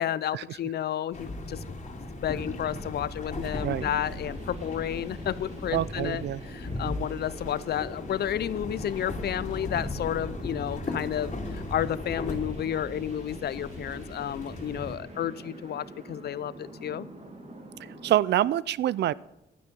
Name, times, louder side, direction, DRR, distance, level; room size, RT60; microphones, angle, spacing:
voice 1, 0.0-17.1, left 10 dB, 65° left, 18 dB, 0.6 m, -32 dB
sound 1, 1.1-15.0, left 2 dB, 40° left, 2.7 m, -37 dB
sound 2, 3.1-18.1, right 2 dB, 35° right, 2.7 m, -45 dB
voice 2, 5.7-6.4 18.0-19.1, right 12 dB, 70° right, 21 dB, 0.4 m, -26 dB
12.0 x 9.5 x 5.3 m, 0.95 s
cardioid pair, 80°, 18 cm